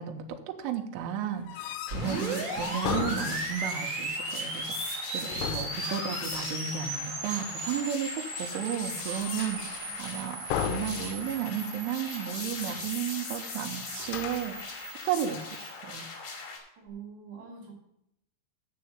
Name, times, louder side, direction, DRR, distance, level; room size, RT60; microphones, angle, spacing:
voice 1, 0.0-14.6 15.0-16.1, right 9 dB, 80° right, 4 dB, 3.2 m, -34 dB
sound 1, 1.4-3.8 5.3-6.9 7.4-8.0 8.5-9.9 10.5-11.6 11.9-12.0 12.4-13.0 14.0-14.6, left 10 dB, 80° left, 3.1 m, -37 dB
sound 2, 1.9-15.7, right 2 dB, 65° right, 1.1 m, -37 dB
sound 3, 2.0-16.6, left 4 dB, 55° left, 3.8 m, -41 dB
voice 2, 2.1-2.9 10.1-10.8 16.8-17.7, right 6 dB, 45° right, -3 dB, 3.8 m, -46 dB
7.3 x 6.9 x 8.1 m, 0.78 s
omnidirectional pair, 5.8 m